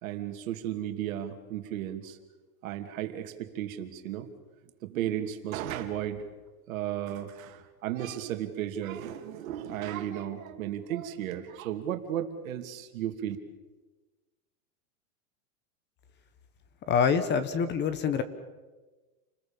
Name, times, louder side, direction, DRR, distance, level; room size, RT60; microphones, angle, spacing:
voice 1, 0.0-2.2 2.6-4.3 4.8-6.2 6.7-13.4, right 11 dB, 70° right, 6 dB, 2.9 m, -34 dB
voice 2, 16.9-18.2, left 6 dB, 25° left, 13 dB, 1.4 m, -25 dB
29.5 x 20.5 x 7.3 m, 1.2 s
supercardioid pair, 155°, 42 cm